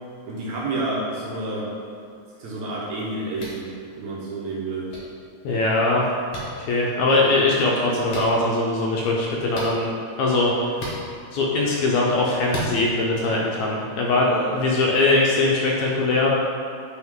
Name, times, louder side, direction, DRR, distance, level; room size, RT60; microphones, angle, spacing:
voice 1, 0.3-1.7 2.4-3.7 4.0-4.9 14.2-14.6, right 2 dB, 65° right, -5 dB, 2.1 m, -29 dB
sound 1, 3.3-3.6 4.9-5.0 6.3-6.4 8.1-8.3 9.5-9.7 10.7-11.0 12.5-12.7, equal, 55° left, 1.6 m, -32 dB
voice 2, 5.4-6.1 6.6-9.9 10.2-10.8 11.3-16.3, left 2 dB, 75° left, -3 dB, 1.9 m, -21 dB
9.0 x 3.9 x 3.6 m, 2.3 s
omnidirectional pair, 3.8 m